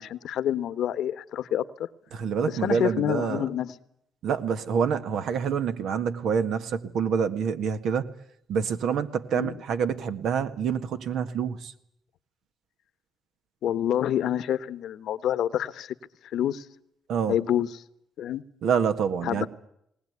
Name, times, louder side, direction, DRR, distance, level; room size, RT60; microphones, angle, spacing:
voice 1, 0.0-1.6 2.5-3.7 9.3-9.6 13.6-15.9 16.3-16.6 17.3-17.7 18.2-18.4 19.2-19.5, left 10 dB, 75° left, 1.1 m, -27 dB
voice 2, 2.1-3.4 4.2-8.1 8.5-11.7 17.1-17.4 18.6-19.5, right 7 dB, 75° right, 1.7 m, -27 dB
20.5 x 19.0 x 9.5 m
cardioid pair, 90°, 0 cm